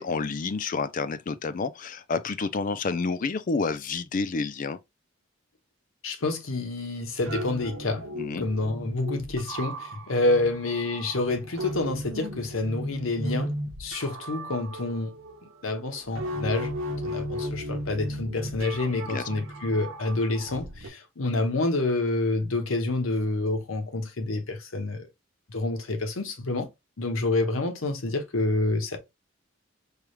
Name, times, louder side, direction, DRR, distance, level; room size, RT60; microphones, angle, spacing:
voice 1, 0.0-4.8 8.2-8.5 19.1-19.2, left 4 dB, 40° left, 0.4 m, -29 dB
voice 2, 6.0-8.1 8.4-13.5 13.8-15.1 15.6-16.7 17.0-25.1 25.5-26.7 27.0-29.0, left 2 dB, 80° left, 1.0 m, -28 dB
sound 1, 7.0-20.9, equal, 85° right, 0.9 m, -36 dB
4.7 x 2.4 x 3.0 m
head